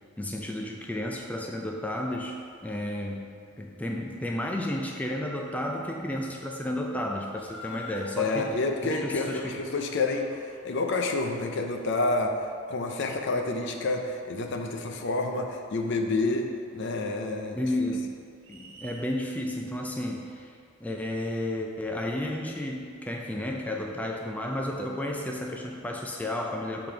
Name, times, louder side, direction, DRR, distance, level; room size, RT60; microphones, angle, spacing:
voice 1, 0.2-2.4 2.6-3.3 3.6-8.5 8.8-9.6 17.5-18.1 18.5-26.9, left 1 dB, 10° left, 0 dB, 0.4 m, -32 dB
Laughter, 7.4-8.1 8.9-12.0 12.3-12.4, left 4 dB, 25° left, 1.1 m, -43 dB
voice 2, 8.2-12.3 12.7-17.6, left 3 dB, 60° left, 4 dB, 0.6 m, -29 dB
sound 1, 18.4-19.1, right 5 dB, 65° right, 1.1 m, -48 dB
6.8 x 3.8 x 4.5 m, 2.2 s
head